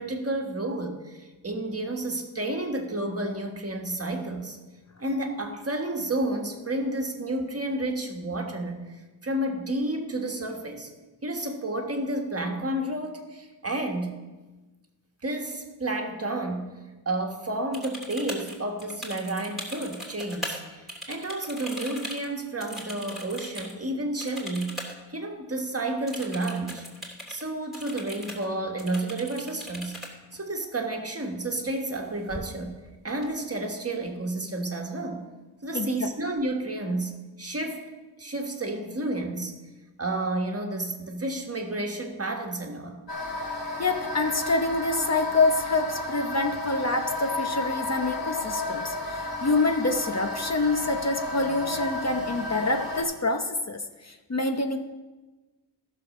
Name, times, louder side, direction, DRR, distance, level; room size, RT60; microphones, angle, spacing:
voice 1, 0.0-4.6 5.0-10.9 11.2-14.2 15.2-16.7 17.0-24.8 25.1-26.8 27.3-32.8 33.0-35.3 35.6-37.9 38.2-39.6 40.0-43.0, right 1 dB, 35° right, 3 dB, 1.5 m, -31 dB
sound 1, 17.7-20.6 20.9-23.7 24.2-25.0 25.2-25.3 26.1-27.4 27.7-28.5 28.8-30.1 31.8-32.0 32.3-32.8 33.1-33.7, equal, ahead, 3.0 m, -39 dB
voice 2, 35.7-36.1 43.8-54.8, left 2 dB, 40° left, 5 dB, 0.9 m, -26 dB
sound 2, 43.1-53.0, left 2 dB, 75° left, 4.4 m, -32 dB
14.0 x 6.4 x 6.4 m, 1.2 s
wide cardioid pair, 100°, 43 cm